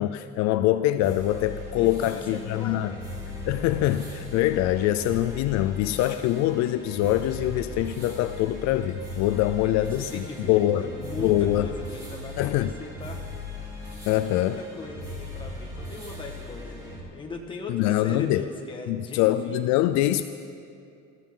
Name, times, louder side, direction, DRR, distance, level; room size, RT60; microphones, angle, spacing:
voice 1, 0.0-2.9 3.4-10.9 11.2-11.7 12.4-12.7 14.1-14.6 17.7-18.4 18.9-20.3, left 13 dB, 65° left, 11 dB, 0.5 m, -24 dB
sound 1, 1.0-17.0, left 2 dB, 10° right, 2.9 m, -38 dB
voice 2, 1.5-3.0 9.5-13.3 14.2-19.6, left 3 dB, 15° left, 1 dB, 1.5 m, -39 dB
21.5 x 14.0 x 3.8 m, 2.4 s
cardioid pair, 165°, 30 cm